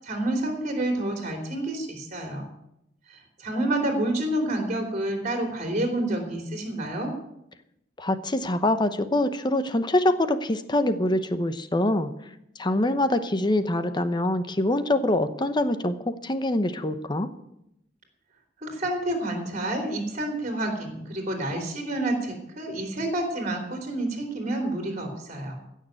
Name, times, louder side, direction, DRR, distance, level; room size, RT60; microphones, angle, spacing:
voice 1, 0.0-2.5 3.4-7.1 18.6-25.6, right 1 dB, 40° right, 3 dB, 3.2 m, -29 dB
voice 2, 8.0-12.1 12.6-17.3, left 1 dB, 25° left, 11 dB, 0.9 m, -24 dB
16.0 x 6.7 x 8.9 m, 0.81 s
head